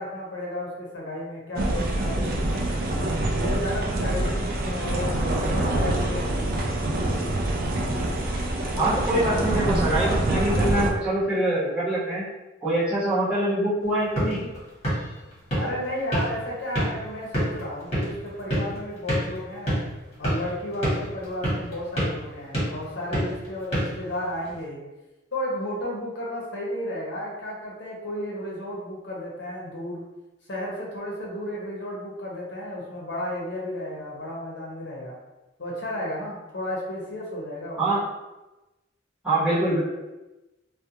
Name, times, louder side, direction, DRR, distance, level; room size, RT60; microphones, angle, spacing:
voice 1, 0.0-2.9 3.3-6.8 15.5-19.8 20.2-24.8 25.3-30.0 30.5-35.2 35.6-37.8, left 1 dB, 65° left, -4 dB, 0.7 m, -33 dB
sound 1, 1.6-10.9, right 1 dB, 50° right, 0.4 m, -25 dB
voice 2, 8.8-12.2 12.6-14.5 37.8-38.0 39.2-39.8, right 1 dB, 5° right, -12 dB, 1.0 m, -24 dB
sound 2, 13.8-24.6, right 1 dB, 35° left, 1.2 m, -30 dB
2.4 x 2.2 x 2.8 m, 1.0 s
head